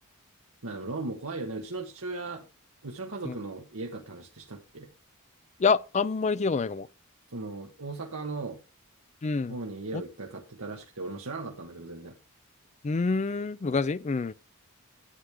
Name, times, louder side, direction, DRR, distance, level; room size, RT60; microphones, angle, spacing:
voice 1, 0.6-2.4 2.8-4.9 7.3-8.6 9.5-12.1, right 3 dB, 70° right, 1.2 m, -37 dB
voice 2, 5.6-6.9 9.2-9.6 9.9-10.0 12.8-14.3, left 4 dB, 30° left, 0.4 m, -27 dB
11.5 x 8.3 x 3.4 m
head